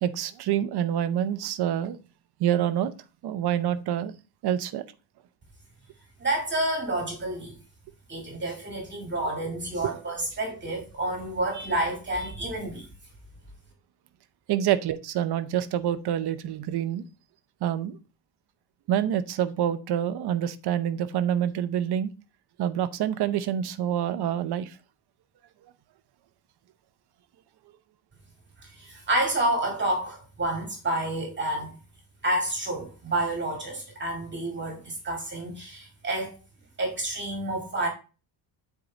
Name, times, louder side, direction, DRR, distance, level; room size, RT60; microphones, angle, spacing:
voice 1, 0.0-2.0 2.4-2.9 3.2-4.1 4.4-4.8 14.5-17.0 17.6-18.0 18.9-22.1 22.6-24.7, right 10 dB, 55° right, 0.8 m, -27 dB
voice 2, 6.2-7.6 8.1-12.8 28.8-31.8 32.2-36.4 36.8-37.9, right 1 dB, 25° right, 2.2 m, -29 dB
8.6 x 4.7 x 3.8 m
cardioid pair, 150°, 46 cm